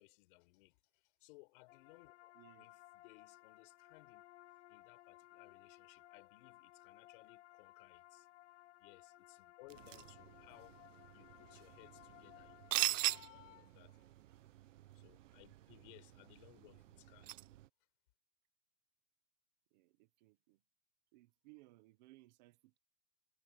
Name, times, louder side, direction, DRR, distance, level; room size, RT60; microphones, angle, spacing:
voice 1, 0.0-4.3 4.7-8.3 8.8-10.8 11.1-14.0 14.9-17.3, left 24 dB, 40° left, 5.9 m, -63 dB
sound 1, 1.7-13.2, left 15 dB, 65° left, 0.8 m, -61 dB
voice 2, 2.3-2.7 9.8-10.1 15.7-15.9 19.7-20.6 21.1-22.8, right 20 dB, 35° right, 1.1 m, -64 dB
sound 2, 9.7-17.7, right 15 dB, 80° right, 0.8 m, -43 dB
sound 3, 12.9-14.4, left 15 dB, 85° left, 3.1 m, -61 dB
supercardioid pair, 170°, 37 cm